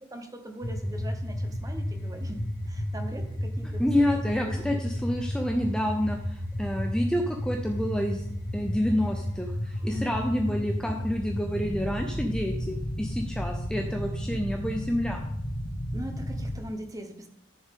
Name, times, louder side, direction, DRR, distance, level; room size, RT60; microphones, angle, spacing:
voice 1, 0.0-4.8 9.8-10.3 15.9-17.3, right 1 dB, 15° right, 6 dB, 1.0 m, -41 dB
sound 1, 0.6-16.6, equal, 45° left, 1.1 m, -32 dB
voice 2, 3.8-8.2 8.5-15.3, equal, 5° left, 2 dB, 0.6 m, -28 dB
13.5 x 7.0 x 3.7 m, 0.74 s
head